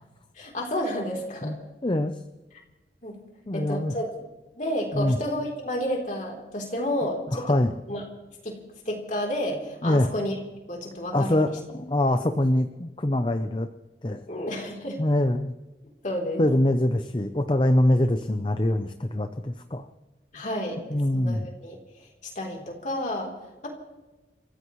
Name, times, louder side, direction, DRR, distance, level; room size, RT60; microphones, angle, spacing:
voice 1, 0.4-1.5 3.0-3.2 3.5-4.1 4.6-7.6 7.9-8.0 8.4-8.6 8.9-10.4 10.7-11.5 14.3-15.0 16.0-16.5 20.3-20.8 21.1-21.8 22.4-23.3 23.6-23.7, equal, 45° left, 0 dB, 3.5 m, -30 dB
voice 2, 1.8-2.1 3.5-3.9 4.9-5.2 7.3-7.7 9.8-10.1 11.1-13.7 14.0-14.2 15.0-15.5 16.4-19.9 20.9-21.5, left 1 dB, 25° left, 8 dB, 0.6 m, -24 dB
29.5 x 15.0 x 3.2 m, 1.2 s
head